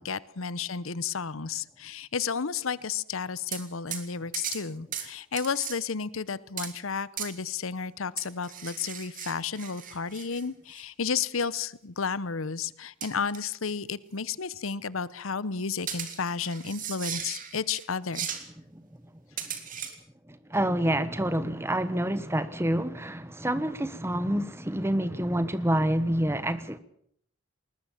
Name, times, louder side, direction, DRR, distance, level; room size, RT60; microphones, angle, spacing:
voice 1, 0.0-18.3, left 5 dB, 80° left, 19 dB, 0.9 m, -32 dB
sound 1, 3.5-3.6 3.9-4.1 4.3-4.6 4.9-5.1 5.4-5.8 6.6-6.7 7.2-7.3 8.2-10.4 10.7-10.8 13.0-13.4 13.6-13.7 15.9-17.8 18.1-18.5 19.4-19.9, right 8 dB, 40° right, 2.9 m, -37 dB
voice 2, 20.3-26.8, right 1 dB, 10° right, 13 dB, 1.2 m, -27 dB
20.5 x 20.0 x 7.4 m, 0.66 s
head